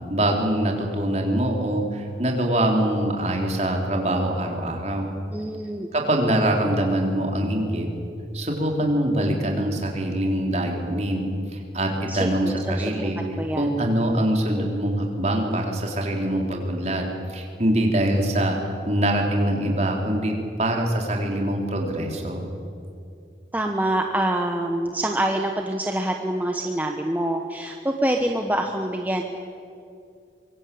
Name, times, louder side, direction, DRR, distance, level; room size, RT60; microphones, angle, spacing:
voice 1, 0.1-5.1 5.9-7.9 8.3-11.3 11.5-13.2 13.6-18.6 18.9-22.5, right 1 dB, 40° right, 1 dB, 4.0 m, -24 dB
voice 2, 5.3-5.9 12.1-13.1 13.4-13.7 23.5-29.2, right 1 dB, 10° right, 3 dB, 1.2 m, -26 dB
24.5 x 24.0 x 8.7 m, 2.5 s
head